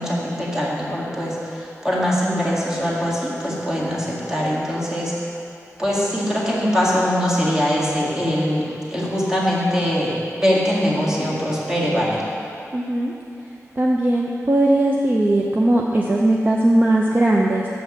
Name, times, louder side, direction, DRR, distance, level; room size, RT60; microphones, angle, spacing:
voice 1, 0.0-5.1 5.8-12.2, equal, 10° right, -6 dB, 1.9 m, -22 dB
voice 2, 12.7-13.1 13.8-17.7, right 1 dB, 35° right, -2 dB, 0.6 m, -18 dB
6.4 x 5.7 x 7.1 m, 2.8 s
wide cardioid pair, 95°, 6 cm